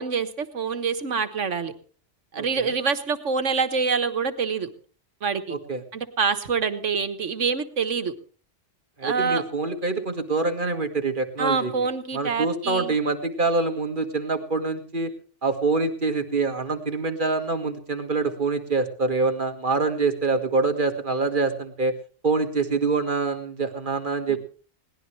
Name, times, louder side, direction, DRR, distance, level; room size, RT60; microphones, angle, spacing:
voice 1, 0.0-1.7 2.3-4.7 5.2-5.5 5.9-8.1 9.0-9.4 11.4-12.9 24.3-24.4, right 5 dB, 85° right, 9 dB, 1.7 m, -26 dB
voice 2, 2.4-2.7 5.5-5.8 9.0-11.7 12.1-15.1 15.4-21.9 22.2-24.4, right 3 dB, 45° right, 6 dB, 1.9 m, -25 dB
21.5 x 18.0 x 3.3 m, 0.39 s
omnidirectional pair, 1.2 m